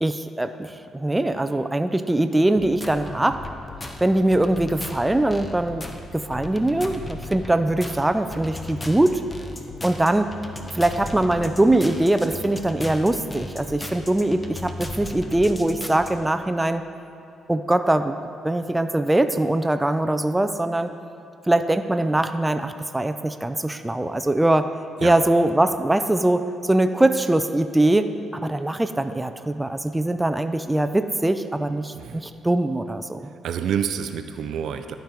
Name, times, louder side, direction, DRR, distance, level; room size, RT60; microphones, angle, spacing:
voice 1, 0.0-3.4 4.0-5.8 6.1-9.2 9.8-10.3 10.7-16.8 17.5-18.2 18.4-20.9 21.5-24.7 25.0-33.2, right 1 dB, 10° right, 8 dB, 0.4 m, -22 dB
sound 1, 2.6-16.1, left 1 dB, 15° left, 0.8 m, -36 dB
voice 2, 33.4-34.9, right 8 dB, 75° right, 9 dB, 0.5 m, -28 dB
12.0 x 5.2 x 4.5 m, 2.7 s
cardioid pair, 90°, 0 cm